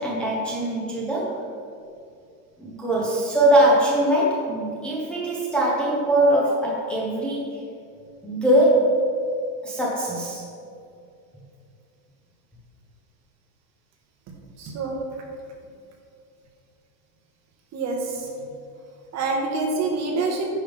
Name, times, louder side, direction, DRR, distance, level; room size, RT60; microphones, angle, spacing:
voice 1, 0.0-1.4 2.6-7.6 8.2-9.0 9.6-10.4, right 1 dB, ahead, -6 dB, 1.0 m, -21 dB
voice 2, 14.6-14.9 17.7-18.3 19.1-20.5, right 3 dB, 30° right, 0 dB, 1.4 m, -26 dB
10.5 x 5.5 x 3.5 m, 2.5 s
supercardioid pair, 135°, 49 cm